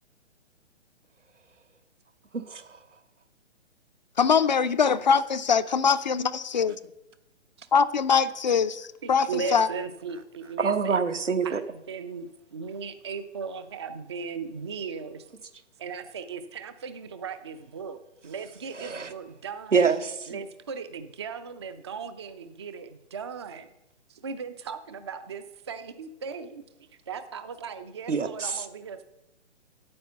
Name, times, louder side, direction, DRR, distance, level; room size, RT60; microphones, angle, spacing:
voice 1, 2.5-2.8 10.6-11.6 18.7-19.1 19.7-20.4 28.1-28.6, right 5 dB, 85° right, 8 dB, 1.2 m, -26 dB
voice 2, 4.2-6.7 7.7-9.7, left 6 dB, 40° left, 13 dB, 0.4 m, -23 dB
voice 3, 9.0-11.0 11.4-15.3 15.8-19.9 20.3-23.7 24.1-26.6 27.1-29.0, right 5 dB, 25° right, 11 dB, 0.4 m, -37 dB
9.5 x 8.6 x 6.7 m, 0.89 s
figure-of-eight pair, 135°, 36 cm